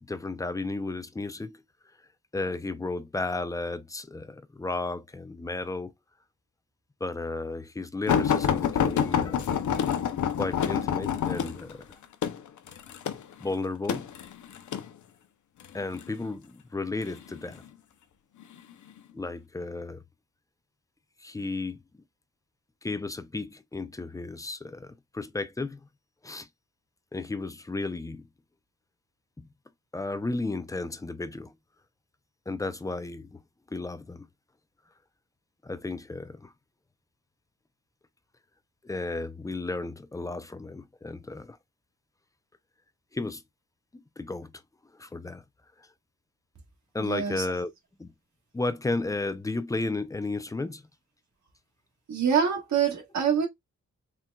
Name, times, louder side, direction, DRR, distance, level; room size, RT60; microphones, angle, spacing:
voice 1, 0.0-1.6 2.3-5.9 7.0-9.5 10.4-12.0 13.4-14.1 15.7-17.6 19.1-20.0 21.2-21.8 22.8-25.8 26.2-26.5 27.1-28.3 29.4-29.5 29.9-31.5 32.5-33.4 33.7-34.3 35.6-36.5 38.8-41.6 43.1-43.4 43.9-44.5 45.0-45.4 45.8-45.9 46.9-47.7 48.0-48.1 48.5-50.8, left 3 dB, 10° left, 0.4 m, -33 dB
sound 1, 8.1-14.9 15.6-16.1 17.0-17.7 18.4-18.6 19.0-19.1, left 8 dB, 90° left, 0.7 m, -27 dB
voice 2, 47.0-47.5 52.1-53.5, right 7 dB, 70° right, 1.4 m, -25 dB
4.4 x 3.7 x 2.2 m
wide cardioid pair, 160°, 29 cm